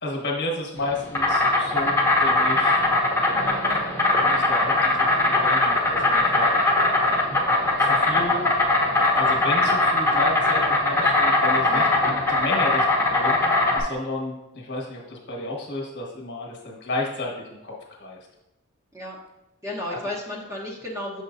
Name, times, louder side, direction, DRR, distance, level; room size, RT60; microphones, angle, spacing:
voice 1, 0.0-2.8 3.7-6.9 7.8-8.5 9.1-11.9 12.3-13.4 13.7-18.2 19.9-20.0, left 2 dB, 55° left, -1 dB, 1.4 m, -32 dB
Insect, 0.8-13.8, left 2 dB, 10° left, 1.1 m, -21 dB
voice 2, 11.7-12.0 18.9-19.2 19.6-21.2, left 1 dB, 15° right, -3 dB, 1.1 m, -33 dB
6.7 x 6.1 x 2.7 m, 0.96 s
head